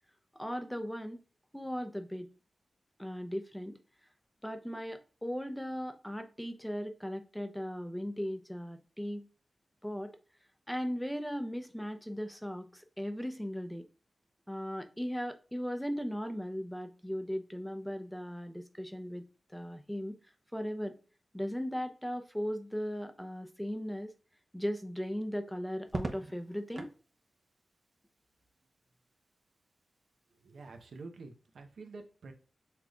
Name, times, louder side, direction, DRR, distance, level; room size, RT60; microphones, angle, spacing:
voice 1, 0.3-1.2 1.5-2.3 3.0-3.8 4.4-9.3 9.8-10.2 10.7-13.9 14.5-20.1 20.5-20.9 21.3-24.1 24.5-26.9, equal, 5° left, 0.7 m, -37 dB
Crackle, 25.8-27.0 28.6-29.1, right 2 dB, 45° right, 0.8 m, -40 dB
voice 2, 30.3-32.3, right 3 dB, 85° right, 0.8 m, -48 dB
5.9 x 3.4 x 2.4 m
cardioid pair, 65°, 0 cm